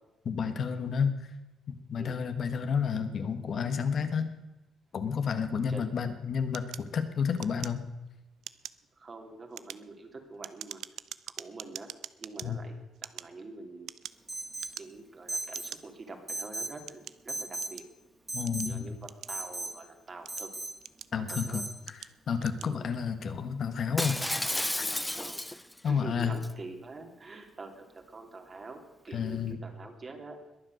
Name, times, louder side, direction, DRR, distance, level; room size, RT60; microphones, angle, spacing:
voice 1, 0.2-1.1 1.7-4.3 4.9-7.9 12.4-12.6 18.3-18.9 21.1-21.6 22.3-24.2 24.8-24.9 25.8-26.3 29.1-29.6, left 6 dB, 55° left, 8 dB, 1.4 m, -30 dB
sound 1, 6.5-8.1 8.4-8.9 9.4-12.5 12.9-14.3 14.6-15.1 15.5-15.8 16.5-17.9 18.5-19.6 20.1-21.3 21.8-22.1 22.4-22.7, right 11 dB, 75° right, 0.5 m, -44 dB
voice 2, 9.0-10.8 11.4-11.9 12.2-13.9 14.8-17.8 18.6-20.5 21.1-21.6 22.6-22.8 25.1-30.4, right 3 dB, 35° right, 4 dB, 2.9 m, -45 dB
Alarm, 14.3-14.8 15.3-15.7 16.3-16.8 17.3-17.8 18.3-18.8 19.3-19.7 20.3-20.7 21.3-21.7, right 2 dB, 15° right, 2.7 m, -36 dB
Shatter, 24.0-25.8 26.2-26.5, left 1 dB, 10° left, 0.4 m, -32 dB
21.5 x 7.5 x 6.4 m, 1.0 s
cardioid pair, 90°, 0 cm